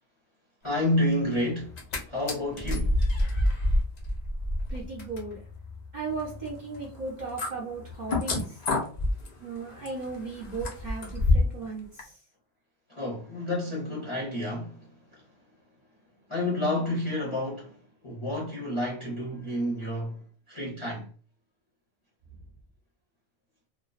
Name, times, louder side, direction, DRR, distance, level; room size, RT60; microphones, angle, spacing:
voice 1, 0.6-1.7 2.1-3.0 12.9-14.9 15.1-15.2 16.3-17.8 18.0-20.2 20.5-21.1, left 1 dB, 30° left, 0.6 m, -29 dB
sound 1, 1.6-2.0 2.3-11.6 12.0-12.1, left 2 dB, 90° left, 0.3 m, -29 dB
voice 2, 4.7-5.4 5.9-8.6 9.4-12.1, right 4 dB, 45° right, 0.7 m, -36 dB
2.3 x 2.2 x 2.4 m
omnidirectional pair, 1.4 m